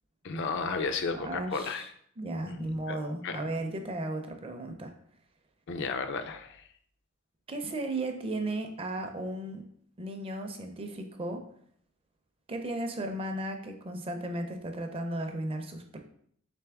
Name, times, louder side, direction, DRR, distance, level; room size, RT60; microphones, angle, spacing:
voice 1, 0.2-1.8 2.4-3.0 3.2-3.4 5.7-6.6, left 4 dB, 55° left, 7 dB, 0.4 m, -33 dB
voice 2, 1.1-1.9 2.2-4.9 7.5-9.6 10.0-11.4 12.5-16.0, right 1 dB, 25° right, 5 dB, 0.4 m, -35 dB
3.5 x 3.4 x 3.4 m, 0.64 s
head